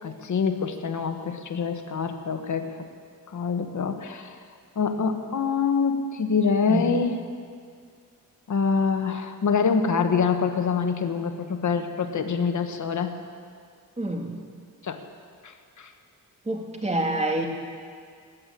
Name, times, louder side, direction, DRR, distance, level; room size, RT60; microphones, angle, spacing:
voice 1, 0.0-2.9 3.3-4.3 4.7-7.2 8.5-13.2 14.8-15.0 15.4-15.9, left 5 dB, 55° left, 6 dB, 1.3 m, -25 dB
voice 2, 14.0-14.3 16.5-17.5, right 1 dB, 20° right, 2 dB, 2.1 m, -27 dB
19.5 x 8.5 x 8.5 m, 2.1 s
wide cardioid pair, 105°, 35 cm